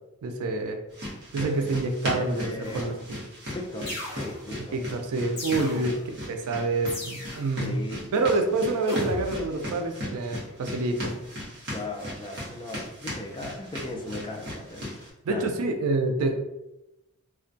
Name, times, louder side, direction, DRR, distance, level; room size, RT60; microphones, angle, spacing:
voice 1, 0.2-0.8 1.3-3.2 4.7-7.7 8.1-11.1 15.3-16.3, right 2 dB, 80° right, 5 dB, 0.4 m, -27 dB
sound 1, 0.9-15.1, left 1 dB, 50° right, 0.9 m, -38 dB
voice 2, 1.4-1.8 2.1-2.8 3.5-4.8 5.6-5.8 7.6-8.1 11.7-15.5, left 2 dB, 20° left, 2 dB, 0.3 m, -37 dB
sound 2, 2.6-3.1 3.9-4.6 5.4-6.1 6.9-7.6 8.9-9.6, left 1 dB, 50° left, 0.8 m, -37 dB
2.3 x 2.1 x 2.6 m, 0.92 s
head